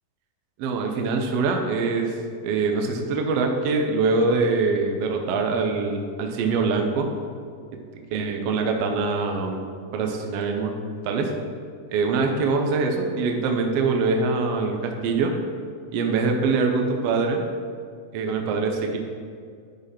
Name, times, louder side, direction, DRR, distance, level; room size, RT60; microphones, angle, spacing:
voice 1, 0.6-2.1 2.4-7.1 8.1-9.6 9.9-10.7 11.0-11.3 11.9-15.3 15.9-17.4 18.1-19.0, right 4 dB, 80° right, 3 dB, 1.4 m, -23 dB
11.0 x 4.1 x 4.2 m, 2.2 s
omnidirectional pair, 3.7 m